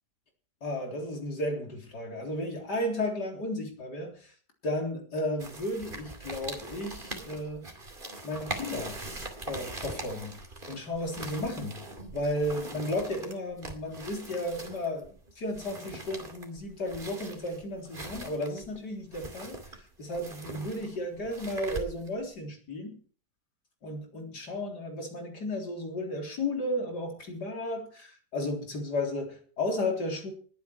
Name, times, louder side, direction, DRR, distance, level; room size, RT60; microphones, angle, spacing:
voice 1, 0.6-4.3 4.6-7.7 8.2-9.1 9.5-10.4 10.7-11.8 12.1-23.0 23.8-30.3, left 1 dB, 80° left, 2 dB, 4.3 m, -34 dB
sound 1, 5.4-22.3, right 2 dB, 30° right, 2.7 m, -42 dB
20.5 x 9.6 x 4.6 m, 0.42 s
omnidirectional pair, 1.8 m